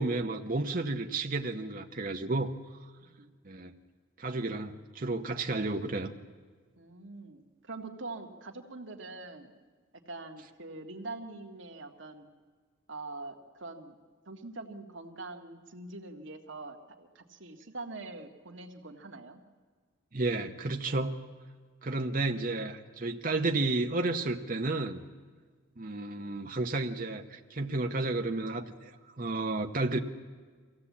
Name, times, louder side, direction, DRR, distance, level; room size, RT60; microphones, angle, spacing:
voice 1, 0.0-2.5 3.4-3.7 4.2-6.1 20.1-21.2 21.8-25.0 25.8-28.9 29.2-30.0, right 2 dB, 40° right, 4 dB, 0.9 m, -32 dB
voice 2, 6.8-9.5 10.0-12.3 12.9-14.0 14.2-19.4, right 2 dB, 60° right, 4 dB, 1.8 m, -44 dB
23.0 x 16.0 x 8.4 m, 1.6 s
head